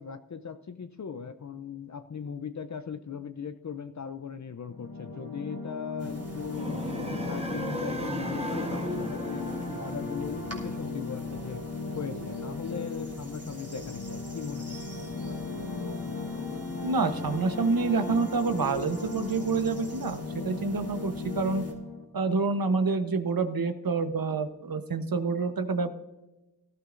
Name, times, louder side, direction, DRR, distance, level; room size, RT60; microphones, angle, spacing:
voice 1, 0.0-11.7 11.9-14.9, left 6 dB, 50° left, 10 dB, 0.6 m, -39 dB
sound 1, 4.7-22.0, left 4 dB, 70° left, 1.9 m, -37 dB
sound 2, 6.0-21.7, right 2 dB, 40° right, 3.1 m, -44 dB
sound 3, 6.5-10.6, right 1 dB, 15° right, 1.2 m, -37 dB
voice 2, 16.8-21.6 22.1-25.9, right 4 dB, 60° right, 9 dB, 1.0 m, -28 dB
18.0 x 12.5 x 2.6 m, 1.0 s
cardioid pair, 45°, 39 cm